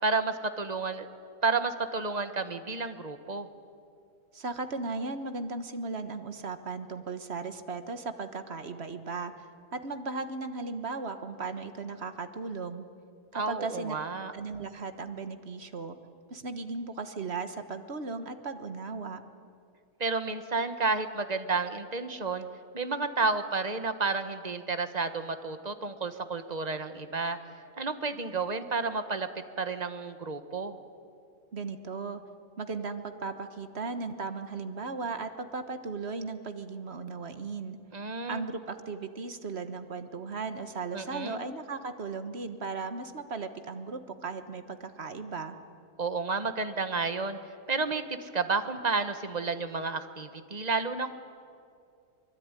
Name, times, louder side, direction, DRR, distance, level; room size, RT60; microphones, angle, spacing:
voice 1, 0.0-1.1 1.4-3.5 13.3-14.3 20.0-22.5 22.7-27.4 27.8-29.3 29.6-30.7 37.9-38.4 40.9-41.4 46.0-47.4 47.7-51.2, right 4 dB, 30° right, 9 dB, 1.3 m, -31 dB
voice 2, 4.3-12.8 13.5-13.9 14.3-16.0 16.3-19.2 31.5-32.2 32.6-37.8 38.3-45.6, right 4 dB, 45° right, 9 dB, 1.5 m, -36 dB
24.0 x 22.0 x 9.8 m, 2.4 s
omnidirectional pair, 1.6 m